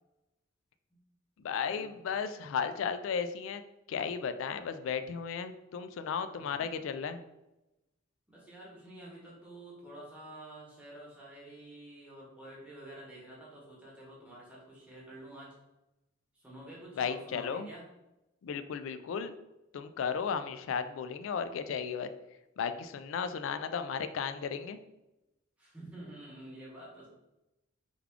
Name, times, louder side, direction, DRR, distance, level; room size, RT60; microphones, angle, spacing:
voice 1, 1.4-3.6 3.9-7.2 17.0-17.7 18.4-19.3 19.7-22.1 22.6-24.8, left 6 dB, 75° left, 10 dB, 0.3 m, -34 dB
voice 2, 6.3-6.7 8.3-15.6 16.3-17.9 25.6-27.1, right 1 dB, 5° right, -6 dB, 1.0 m, -49 dB
3.5 x 2.3 x 3.5 m, 0.95 s
head